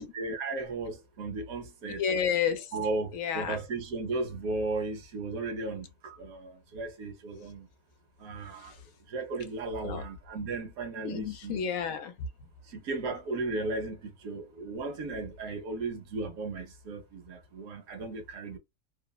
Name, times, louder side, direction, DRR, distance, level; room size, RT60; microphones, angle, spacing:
voice 1, 0.0-2.0 2.7-7.7 8.2-8.7 9.1-11.6 12.7-18.6, right 3 dB, 85° right, 1.2 m, -35 dB
voice 2, 1.9-2.7 3.1-3.6 8.6-8.8 9.8-10.0 11.0-12.3, left 7 dB, 75° left, 1.0 m, -31 dB
3.1 x 2.1 x 2.2 m
omnidirectional pair, 1.5 m